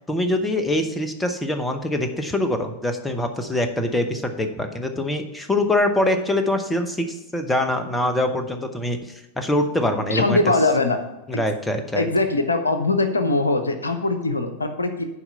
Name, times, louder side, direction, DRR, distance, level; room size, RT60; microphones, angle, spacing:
voice 1, 0.1-9.0 9.4-10.4 11.3-12.1, left 1 dB, 10° left, 6 dB, 1.0 m, -24 dB
voice 2, 10.1-11.0 11.3-11.4 11.9-15.0, left 2 dB, 75° left, 8 dB, 0.8 m, -21 dB
11.0 x 4.7 x 5.5 m, 1.0 s
figure-of-eight pair, 90°, 0 cm